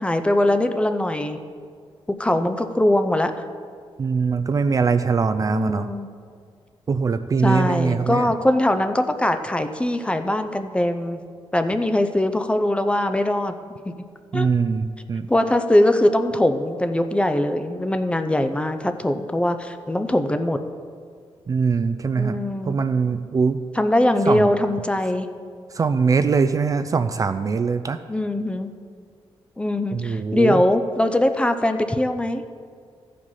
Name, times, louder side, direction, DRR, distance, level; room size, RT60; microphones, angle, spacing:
voice 1, 0.0-1.4 2.2-3.3 5.5-6.1 7.4-11.2 11.5-13.5 14.3-14.5 15.3-20.6 22.1-22.8 23.7-25.3 28.1-28.7 29.6-32.4, left 1 dB, 10° left, 8 dB, 0.6 m, -21 dB
voice 2, 4.0-5.9 6.9-8.3 14.3-15.2 21.5-22.4 22.7-23.6 24.3-24.5 25.7-28.0 29.9-30.6, right 5 dB, 35° right, 10 dB, 0.4 m, -22 dB
14.0 x 5.1 x 5.5 m, 2.1 s
cardioid pair, 105°, 10 cm